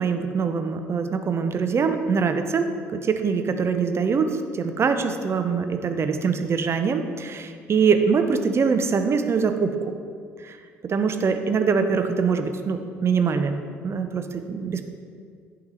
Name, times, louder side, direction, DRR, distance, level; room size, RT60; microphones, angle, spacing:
voice 1, 0.0-9.9 10.4-10.6 10.8-13.6 13.8-14.9, right 5 dB, 35° right, 7 dB, 0.7 m, -23 dB
10.5 x 4.8 x 5.5 m, 2.1 s
figure-of-eight pair, 50°, 8 cm